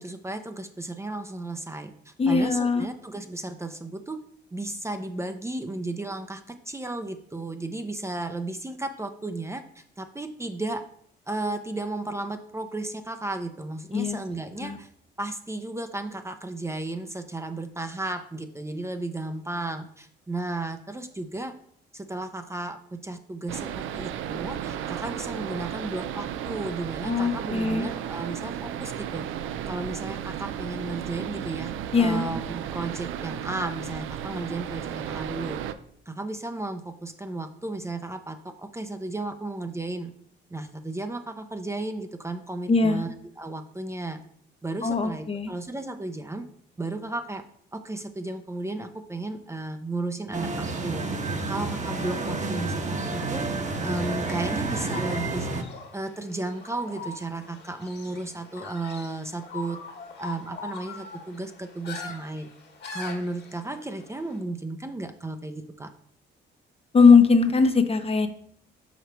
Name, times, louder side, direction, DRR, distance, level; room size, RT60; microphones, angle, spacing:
voice 1, 0.0-4.2 4.5-10.8 11.3-14.9 15.2-21.5 21.9-29.2 29.7-35.6 36.1-40.1 40.5-44.2 44.6-46.4 46.8-47.4 47.7-51.1 51.5-53.4 53.8-55.5 55.9-59.8 60.2-62.5 62.9-65.9, right 2 dB, 15° right, 7 dB, 0.6 m, -34 dB
voice 2, 2.2-2.9 13.9-14.2 14.6-14.8 27.0-27.8 31.9-32.2 42.7-43.0 44.8-45.5 66.9-68.3, left 4 dB, 30° left, 8 dB, 0.7 m, -20 dB
sound 1, 23.5-35.7, right 10 dB, 85° right, 0.5 m, -34 dB
sound 2, 50.3-55.6, right 3 dB, 40° right, 1.1 m, -30 dB
sound 3, 54.8-64.4, left 4 dB, 55° left, 1.6 m, -42 dB
5.5 x 5.1 x 4.5 m, 0.63 s
cardioid pair, 90°, 20 cm